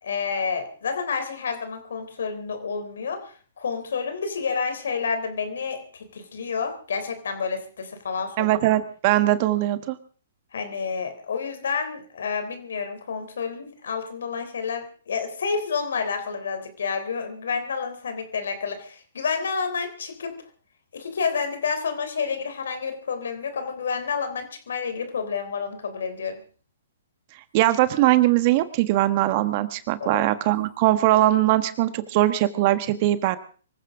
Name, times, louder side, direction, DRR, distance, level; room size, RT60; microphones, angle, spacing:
voice 1, 0.0-8.5 10.5-20.4 20.9-26.4 30.0-30.3, left 5 dB, 70° left, 9 dB, 3.5 m, -29 dB
voice 2, 8.4-10.0 27.5-33.4, right 15 dB, 40° right, 12 dB, 1.3 m, -21 dB
24.5 x 15.5 x 3.7 m, 0.40 s
hypercardioid pair, 125°, 0 cm